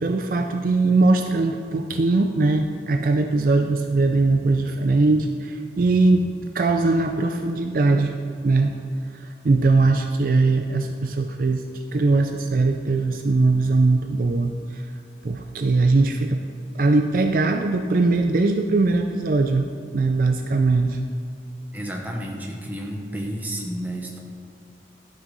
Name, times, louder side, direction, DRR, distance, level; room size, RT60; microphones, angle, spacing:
voice 1, 0.0-8.1 8.4-8.7 9.1-14.9 15.2-16.4 16.7-19.7 19.9-21.0, right 3 dB, 50° right, 5 dB, 0.4 m, -20 dB
voice 2, 21.7-24.2, equal, 10° right, -1 dB, 1.0 m, -31 dB
12.0 x 6.3 x 4.0 m, 2.5 s
head